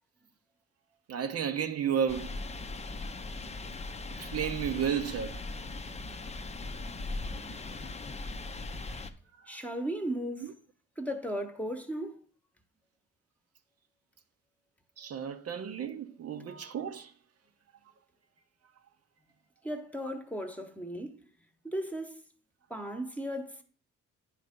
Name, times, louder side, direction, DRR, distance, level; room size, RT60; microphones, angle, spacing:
voice 1, 1.1-2.4 4.1-5.4 9.4-9.6 10.4-10.5 15.0-17.1, right 8 dB, 55° right, 0.7 m, -33 dB
sound 1, 2.1-9.1, left 3 dB, 20° left, 0.6 m, -39 dB
voice 2, 9.5-10.5 11.0-12.2 19.6-21.1 21.6-22.2 22.7-23.6, equal, 5° left, 1.1 m, -36 dB
9.5 x 3.3 x 5.2 m
cardioid pair, 90°, 30 cm